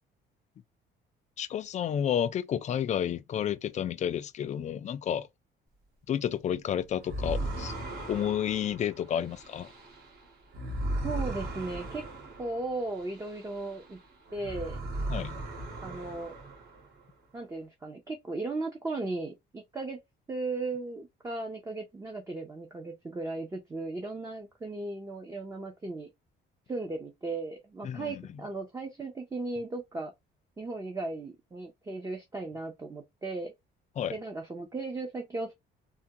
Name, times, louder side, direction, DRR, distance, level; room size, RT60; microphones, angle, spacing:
voice 1, 1.4-5.3 6.1-7.7 8.1-9.7 15.1-15.4 27.8-28.4 34.0-34.2, left 9 dB, 35° left, 0.4 m, -31 dB
sound 1, 7.0-13.9 14.3-17.0, right 1 dB, 50° right, 1.6 m, -37 dB
voice 2, 11.0-12.0 12.4-14.0 14.3-14.8 15.8-16.4 17.3-20.0 20.3-26.1 26.7-30.1 30.6-33.5 34.1-35.5, right 2 dB, 15° right, 0.6 m, -36 dB
3.4 x 2.2 x 2.7 m
cardioid pair, 125°, 20 cm